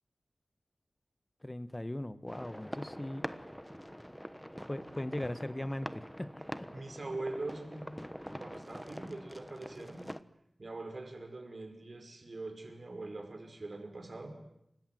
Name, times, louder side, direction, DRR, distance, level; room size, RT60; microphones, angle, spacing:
voice 1, 1.4-3.3 4.7-6.7, left 1 dB, 20° left, 13 dB, 1.3 m, -39 dB
sound 1, 2.3-10.2, equal, ahead, 1.2 m, -45 dB
voice 2, 6.7-7.9 8.4-10.1 10.6-14.3, right 2 dB, 55° right, 5 dB, 5.8 m, -42 dB
29.5 x 25.0 x 7.9 m, 0.80 s
wide cardioid pair, 85°, 0 cm